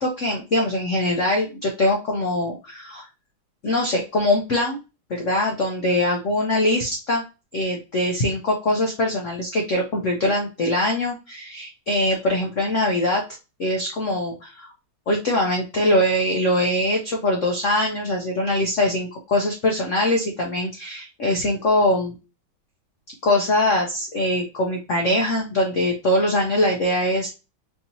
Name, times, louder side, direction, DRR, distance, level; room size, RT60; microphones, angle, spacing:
voice 1, 0.0-3.1 3.6-4.8 5.1-7.2 7.5-13.2 13.6-14.7 15.1-22.1 23.2-27.4, left 1 dB, 70° left, 0 dB, 0.7 m, -22 dB
4.5 x 2.8 x 2.6 m, 0.29 s
omnidirectional pair, 2.3 m